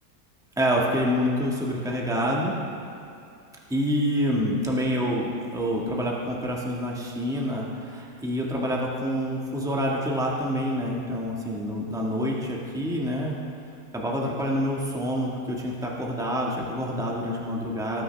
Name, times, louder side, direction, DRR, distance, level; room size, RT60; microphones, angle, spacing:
voice 1, 0.6-2.6 3.7-13.4 13.9-18.0, equal, ahead, -3 dB, 1.3 m, -27 dB
18.5 x 10.0 x 3.4 m, 2.6 s
omnidirectional pair, 1.8 m